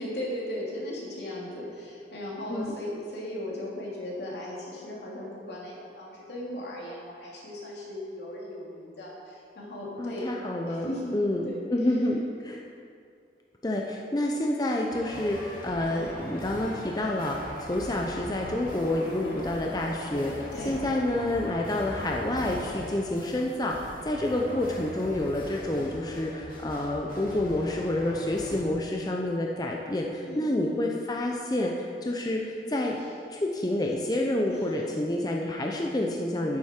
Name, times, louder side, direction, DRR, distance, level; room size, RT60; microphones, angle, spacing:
voice 1, 0.0-10.3 10.7-11.6 15.8-16.1 20.5-20.8 30.2-30.6 32.3-33.1 34.5-34.9 36.3-36.6, left 1 dB, 75° left, -4 dB, 2.7 m, -37 dB
voice 2, 10.0-12.6 13.6-33.0 33.3-36.6, left 1 dB, 20° left, 0 dB, 0.6 m, -29 dB
sound 1, 14.9-28.6, equal, 50° left, 2.0 m, -40 dB
10.5 x 9.6 x 4.5 m, 2.4 s
head